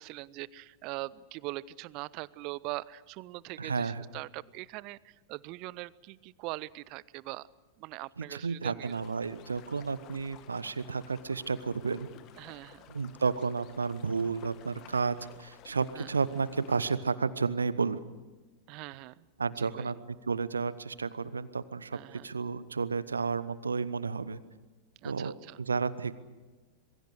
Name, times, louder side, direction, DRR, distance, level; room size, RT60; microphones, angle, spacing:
voice 1, 0.0-7.5 7.8-9.0 12.4-12.9 15.9-16.1 18.7-19.3 19.6-19.9 21.9-22.3 25.0-25.6, right 20 dB, 40° right, 22 dB, 0.7 m, -42 dB
voice 2, 3.6-4.0 8.2-12.1 12.9-18.0 19.4-24.4 25.0-26.2, right 5 dB, 75° right, 17 dB, 1.0 m, -32 dB
sound 1, 8.8-17.0, left 11 dB, 35° left, 1.4 m, -54 dB
26.5 x 22.5 x 6.5 m, 1.3 s
figure-of-eight pair, 90°, 0 cm